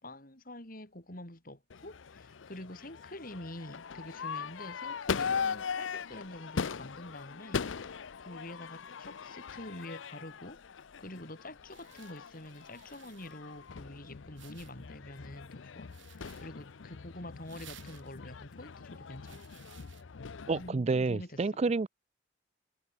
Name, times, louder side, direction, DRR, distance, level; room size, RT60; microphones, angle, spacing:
voice 1, 0.0-19.6 20.6-21.5, left 1 dB, 45° left, 5.6 m, -47 dB
Crowd / Fireworks, 1.7-20.7, left 6 dB, 75° left, 0.6 m, -40 dB
sound 1, 11.3-20.0, right 10 dB, 80° right, 4.1 m, -59 dB
voice 2, 20.5-21.9, right 3 dB, 35° right, 0.4 m, -29 dB
head